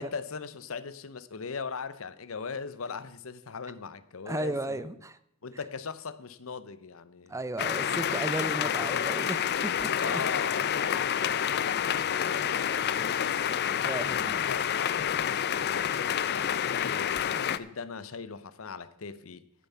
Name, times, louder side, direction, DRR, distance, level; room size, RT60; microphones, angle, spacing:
voice 1, 0.0-4.9 5.4-7.3 9.9-15.9 16.3-19.4, left 5 dB, 75° left, 0.7 m, -40 dB
voice 2, 4.3-5.2 7.3-10.2 13.8-14.5, right 2 dB, 15° right, 0.5 m, -35 dB
sound 1, 7.6-17.6, left 9 dB, 50° left, 0.5 m, -28 dB
15.0 x 7.2 x 5.6 m
head